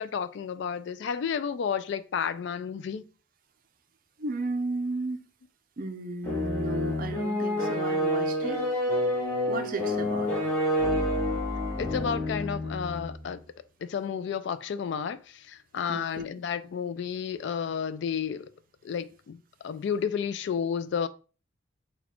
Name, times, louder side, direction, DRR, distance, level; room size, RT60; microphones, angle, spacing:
voice 1, 0.0-3.0 11.8-13.4 13.8-18.5 18.8-19.4 19.6-21.1, left 7 dB, 60° left, 0.3 m, -31 dB
voice 2, 4.2-5.2 5.8-8.6 9.5-10.3 15.9-16.2, right 2 dB, 45° right, 0.5 m, -34 dB
sound 1, 6.2-13.2, left 1 dB, 15° left, 1.2 m, -28 dB
4.1 x 2.3 x 4.4 m
head